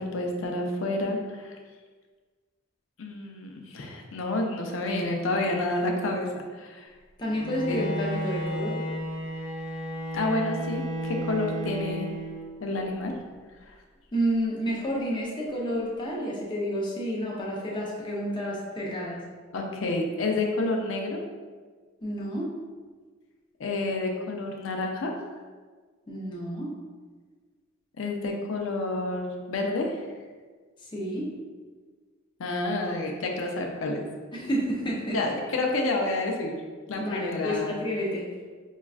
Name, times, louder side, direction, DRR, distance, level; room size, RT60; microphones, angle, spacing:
voice 1, 0.0-1.6 3.0-6.3 6.5-6.9 7.6-7.9 10.1-12.1 12.6-13.2 19.5-21.2 23.6-25.1 28.0-30.0 32.4-34.1 35.1-36.6 36.9-37.7, left 2 dB, 70° left, 2 dB, 0.5 m, -29 dB
voice 2, 7.2-8.8 14.1-19.2 22.0-22.5 26.1-26.7 30.9-31.3 34.3-35.2 37.0-38.2, equal, 20° left, -4 dB, 0.6 m, -30 dB
Bowed string instrument, 7.3-12.6, equal, 5° right, 0.8 m, -33 dB
5.1 x 2.3 x 2.4 m, 1.5 s
head